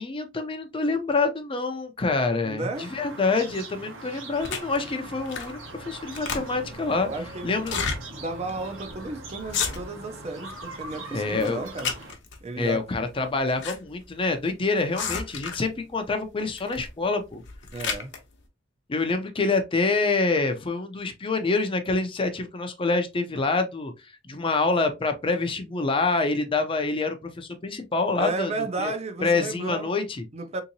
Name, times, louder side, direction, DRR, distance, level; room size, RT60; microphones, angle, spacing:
voice 1, 0.0-7.1 7.4-7.7 11.1-11.6 12.6-17.4 18.9-23.9 24.3-28.5 28.8-28.9 29.2-30.2, left 3 dB, 25° left, 0.5 m, -26 dB
voice 2, 2.4-2.9 7.0-11.9 12.4-12.8 17.7-18.1 28.1-29.9 30.3-30.6, right 2 dB, 35° right, 0.5 m, -33 dB
sound 1, 2.7-12.1, right 2 dB, 75° right, 1.0 m, -41 dB
sound 2, 4.4-4.8 5.3-5.6 5.9-6.7 7.6-8.0 8.5-8.6 8.8-9.1 9.4-10.1 10.5-11.0 11.4-12.4 13.2-13.8 14.0-14.1 14.9-15.7 16.6-16.9 17.3-18.2, left 6 dB, 65° left, 0.8 m, -31 dB
3.6 x 2.8 x 2.6 m
head